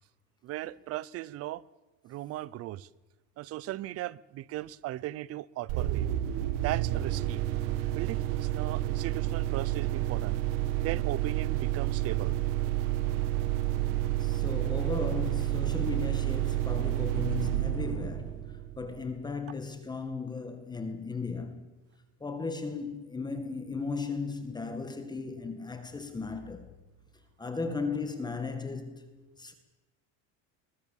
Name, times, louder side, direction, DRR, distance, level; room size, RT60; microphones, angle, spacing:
voice 1, 0.4-1.6 2.0-2.9 3.4-6.1 6.6-7.4 7.9-10.4 10.8-12.3, right 15 dB, 45° right, 0.7 m, -37 dB
sound 1, 5.7-19.2, right 14 dB, 70° right, 1.7 m, -30 dB
voice 2, 13.8-21.7 22.2-26.7 27.4-29.1 29.4-29.5, left 4 dB, 10° left, 1.8 m, -36 dB
22.0 x 21.0 x 7.2 m
cardioid pair, 170°, 33 cm